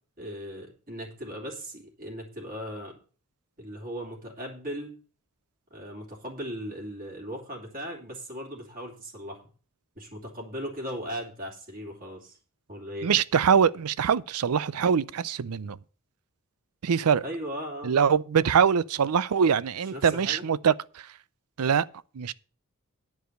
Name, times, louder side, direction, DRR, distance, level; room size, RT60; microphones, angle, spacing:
voice 1, 0.2-3.0 3.6-4.9 5.7-9.5 9.9-12.4 12.7-13.1 17.2-17.9 19.9-20.5, equal, 40° right, 3.0 m, -38 dB
voice 2, 13.0-15.8 16.8-17.2 17.8-21.0 21.6-21.9 22.1-22.3, right 7 dB, 85° right, 0.5 m, -23 dB
10.5 x 4.8 x 8.0 m
head